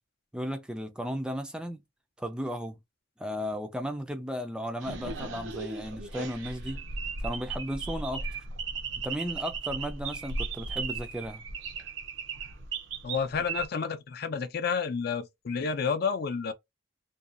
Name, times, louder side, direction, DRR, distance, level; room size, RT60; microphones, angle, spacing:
voice 1, 0.3-1.8 2.2-2.8 3.2-6.8 7.2-8.2 9.0-11.4, equal, 5° right, 0.3 m, -35 dB
sound 1, 4.8-13.7, right 4 dB, 85° right, 0.5 m, -36 dB
voice 2, 13.0-16.5, left 5 dB, 55° left, 0.5 m, -30 dB
2.6 x 2.2 x 2.5 m
head